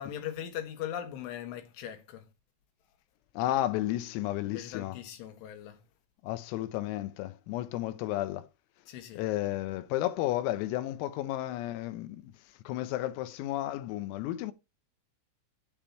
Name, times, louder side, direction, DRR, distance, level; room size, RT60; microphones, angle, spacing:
voice 1, 0.0-2.3 4.4-5.8 8.9-9.2, left 10 dB, 70° left, 4.0 m, -40 dB
voice 2, 3.4-5.0 6.2-8.5 9.2-12.3 12.7-14.5, left 14 dB, 90° left, 3.5 m, -32 dB
8.8 x 8.7 x 5.7 m
omnidirectional pair, 6.0 m